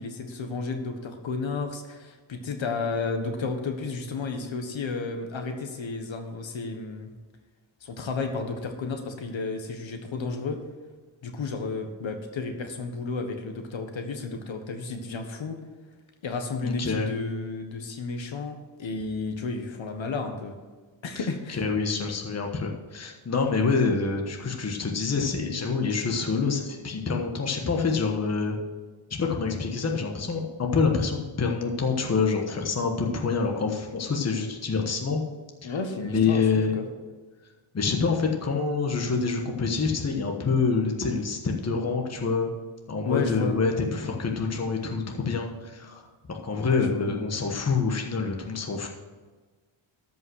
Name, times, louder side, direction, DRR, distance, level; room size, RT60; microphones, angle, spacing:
voice 1, 0.0-7.1 7.8-10.6 11.2-15.6 16.2-20.6 21.0-21.6 35.6-36.9 43.0-43.6 46.6-47.1, left 4 dB, 65° left, 5 dB, 1.4 m, -32 dB
voice 2, 16.6-17.1 21.5-28.6 29.2-35.2 35.6-35.7 36.0-36.7 37.7-42.5 42.9-48.9, left 4 dB, 30° left, 2 dB, 1.3 m, -26 dB
13.0 x 5.5 x 6.3 m, 1.4 s
wide cardioid pair, 140°, 50 cm